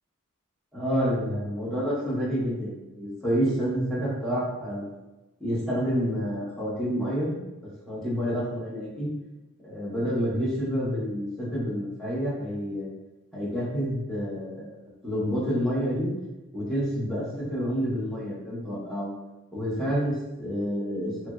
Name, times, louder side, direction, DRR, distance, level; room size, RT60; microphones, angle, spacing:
voice 1, 0.7-4.8 5.4-7.4 7.9-9.1 9.6-12.9 13.3-14.7 15.0-16.1 16.5-19.1 19.5-21.3, equal, ahead, -10 dB, 1.0 m, -28 dB
2.9 x 2.5 x 2.3 m, 1.0 s
head